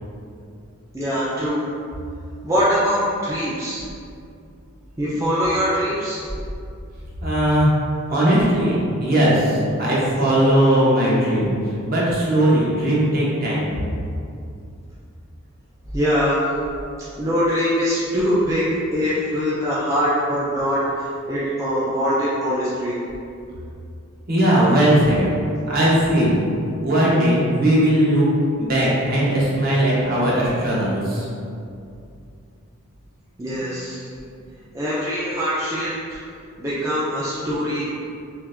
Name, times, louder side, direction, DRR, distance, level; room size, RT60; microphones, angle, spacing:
voice 1, 0.9-1.6 2.4-3.8 5.0-6.2 15.9-16.4 17.2-20.8 21.3-23.0 33.4-34.1 34.7-36.2 36.6-37.9, equal, 15° right, -10 dB, 0.5 m, -22 dB
voice 2, 7.2-7.7 8.1-13.7 24.3-25.3 25.7-26.4 26.8-28.2 28.6-31.3, right 1 dB, 45° right, -7 dB, 0.9 m, -18 dB
5.6 x 2.6 x 2.5 m, 2.5 s
head